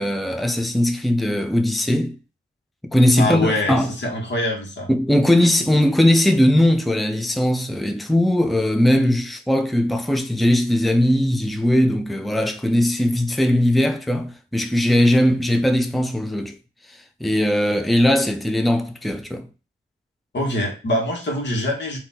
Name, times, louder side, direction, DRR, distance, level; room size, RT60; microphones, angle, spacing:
voice 1, 0.0-2.2 2.8-3.9 4.9-16.6 17.2-19.5, left 1 dB, ahead, 0.5 m, -19 dB
voice 2, 3.2-4.9 20.3-22.0, left 1 dB, 60° left, 1.5 m, -24 dB
4.0 x 2.8 x 4.3 m
wide cardioid pair, 90°, 21 cm